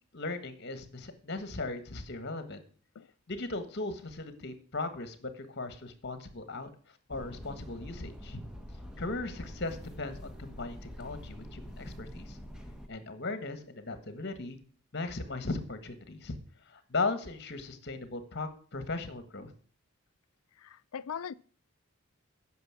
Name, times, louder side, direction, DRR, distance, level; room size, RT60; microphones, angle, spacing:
voice 1, 0.1-2.6 3.3-6.7 7.1-8.4 9.0-12.4 12.9-14.6 14.9-16.4 16.7-19.5, left 3 dB, 50° left, 1.4 m, -37 dB
sound 1, 7.1-12.9, equal, 5° right, 1.1 m, -46 dB
voice 2, 20.6-21.3, left 7 dB, 75° left, 0.4 m, -40 dB
9.4 x 6.4 x 7.4 m
head